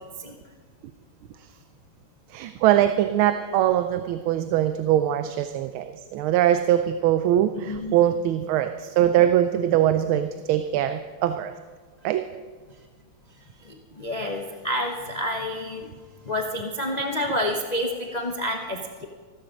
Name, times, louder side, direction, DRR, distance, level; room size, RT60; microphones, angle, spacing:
voice 1, 2.3-11.5 12.0-12.2, right 11 dB, 80° right, 9 dB, 1.5 m, -22 dB
voice 2, 7.5-7.9 13.6-15.9 16.2-19.1, left 1 dB, 40° left, 2 dB, 0.5 m, -29 dB
14.0 x 13.0 x 5.2 m, 1.5 s
omnidirectional pair, 2.3 m